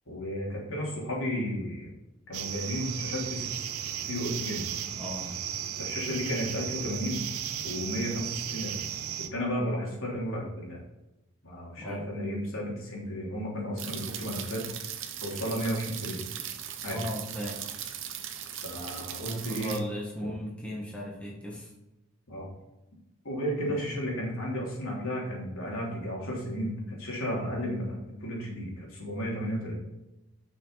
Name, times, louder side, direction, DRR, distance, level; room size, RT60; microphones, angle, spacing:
voice 1, 0.1-1.9 2.3-3.5 4.0-4.7 5.8-7.3 7.6-8.8 9.3-10.8 11.4-14.6 15.2-16.2 16.8-17.0 18.6-19.7 20.2-20.3 22.3-22.5 23.2-29.8, equal, 70° left, -4 dB, 3.2 m, -33 dB
sound 1, 2.3-9.3, right 9 dB, 90° right, 0.6 m, -35 dB
voice 2, 5.0-5.3 11.8-12.1 16.9-17.6 19.2-21.7 23.6-23.7, equal, 5° left, -4 dB, 1.6 m, -36 dB
sound 2, 13.8-19.8, right 10 dB, 60° right, 0.8 m, -39 dB
8.1 x 6.2 x 4.1 m, 0.95 s
head